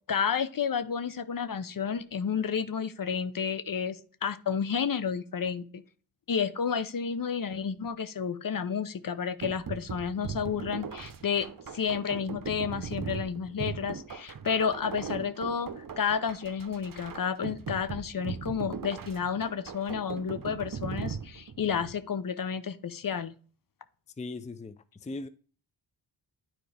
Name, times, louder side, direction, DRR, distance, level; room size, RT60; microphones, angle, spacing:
voice 1, 0.1-5.8 6.3-11.5 11.7-23.4, left 7 dB, 45° left, 0.8 m, -31 dB
sound 1, 9.4-22.0, right 6 dB, 45° right, 1.0 m, -39 dB
voice 2, 24.2-25.3, left 2 dB, 15° left, 0.5 m, -39 dB
9.8 x 4.5 x 3.3 m
supercardioid pair, 40°, 47 cm